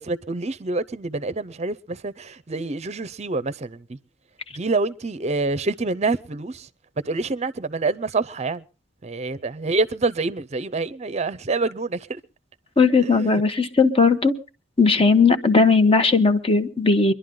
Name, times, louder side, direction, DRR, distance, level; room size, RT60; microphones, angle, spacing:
voice 1, 0.0-4.0 4.6-6.7 7.0-8.6 9.0-12.2 13.0-13.4, right 3 dB, 35° right, 0.6 m, -27 dB
voice 2, 12.8-14.3 14.8-17.1, left 4 dB, 30° left, 1.1 m, -17 dB
24.0 x 11.5 x 3.7 m
head